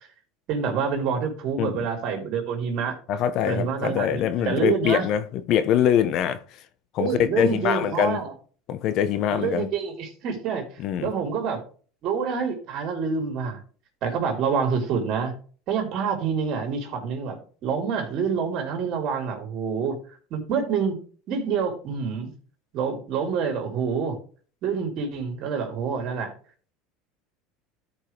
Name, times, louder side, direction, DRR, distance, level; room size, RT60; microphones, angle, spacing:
voice 1, 0.5-3.0 3.5-5.1 7.0-8.3 9.3-10.7 11.0-11.6 12.0-13.6 14.0-15.3 15.7-20.0 20.3-21.0 21.3-22.3 22.7-24.2 24.6-26.3, right 6 dB, 55° right, 3.7 m, -27 dB
voice 2, 3.1-6.4 6.9-8.2 8.7-9.7 10.8-11.1, left 10 dB, 55° left, 0.9 m, -23 dB
13.5 x 5.5 x 3.3 m
supercardioid pair, 110°, 0 cm